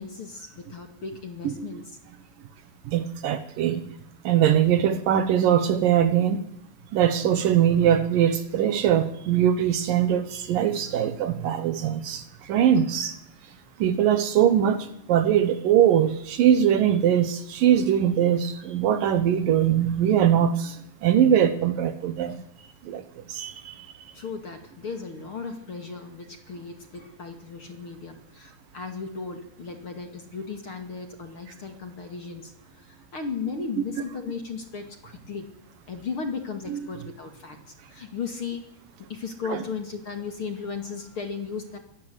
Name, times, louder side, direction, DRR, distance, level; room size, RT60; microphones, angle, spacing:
voice 1, 0.0-1.8 24.1-32.5 33.1-35.5 35.9-38.7 39.1-41.8, left 5 dB, 40° left, 6 dB, 2.5 m, -36 dB
voice 2, 1.4-1.8 2.9-3.8 4.2-6.4 6.9-13.2 13.8-20.8 21.0-22.4 22.9-23.0 23.3-23.8 33.6-33.7 36.7-36.9 39.5-39.6, right 9 dB, 65° right, 12 dB, 2.6 m, -22 dB
23.5 x 18.0 x 8.0 m, 0.77 s
omnidirectional pair, 4.6 m